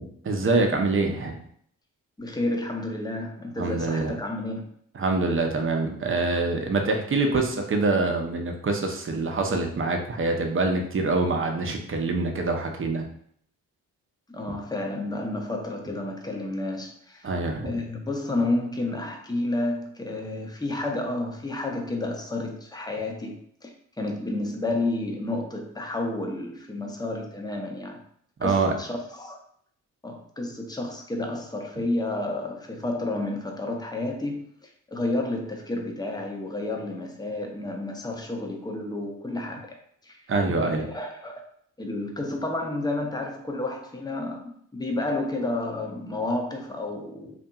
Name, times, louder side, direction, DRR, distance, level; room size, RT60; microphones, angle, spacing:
voice 1, 0.0-1.4 3.6-4.2 4.9-13.0 17.2-17.8 28.4-28.7 31.8-31.9 40.3-40.9, right 3 dB, 35° right, 3 dB, 0.6 m, -25 dB
voice 2, 2.2-4.6 14.3-17.3 17.6-28.0 28.4-29.4 30.0-40.2 40.6-41.4 41.8-47.4, left 2 dB, 10° left, 3 dB, 0.5 m, -31 dB
2.6 x 2.5 x 2.3 m, 0.65 s
supercardioid pair, 45°, 39 cm